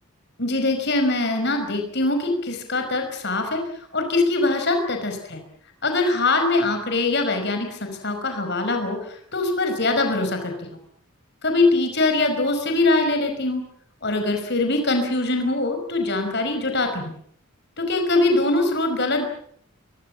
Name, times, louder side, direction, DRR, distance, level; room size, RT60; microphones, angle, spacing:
voice 1, 0.4-3.6 3.9-5.4 5.8-10.5 11.4-13.6 14.0-17.2 17.8-19.3, left 2 dB, 50° left, 5 dB, 5.3 m, -22 dB
23.5 x 23.0 x 7.3 m, 0.63 s
head